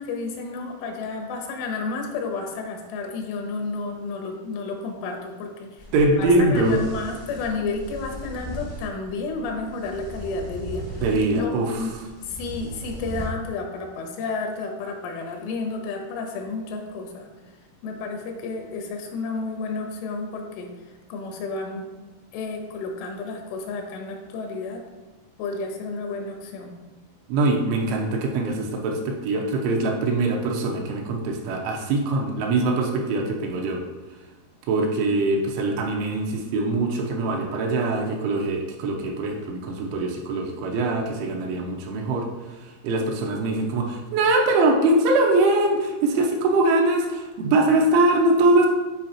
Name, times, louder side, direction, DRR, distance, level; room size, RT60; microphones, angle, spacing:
voice 1, 0.0-5.9 6.2-11.0 11.3-11.9 12.3-17.3 17.8-20.7 21.1-21.9 22.3-24.8 25.4-26.8, left 3 dB, 80° left, 2 dB, 3.4 m, -31 dB
sound 1, 5.8-13.3, right 1 dB, 55° right, 0.5 m, -38 dB
voice 2, 5.9-6.8 11.0-12.0 27.3-33.8 34.7-48.7, right 2 dB, 85° right, 1 dB, 3.1 m, -22 dB
10.5 x 4.8 x 2.9 m, 1.2 s
omnidirectional pair, 5.6 m